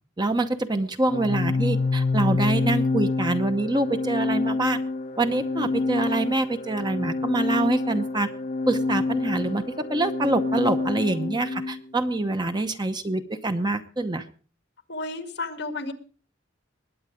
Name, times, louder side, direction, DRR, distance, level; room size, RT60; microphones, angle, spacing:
voice 1, 0.2-4.8 5.2-8.3 8.7-14.2, right 2 dB, 20° right, 8 dB, 0.8 m, -25 dB
Organ, 1.0-11.8, left 3 dB, 40° left, 0.5 m, -27 dB
voice 2, 14.9-15.9, left 3 dB, 60° left, 8 dB, 2.0 m, -32 dB
21.0 x 8.7 x 5.0 m, 0.39 s
head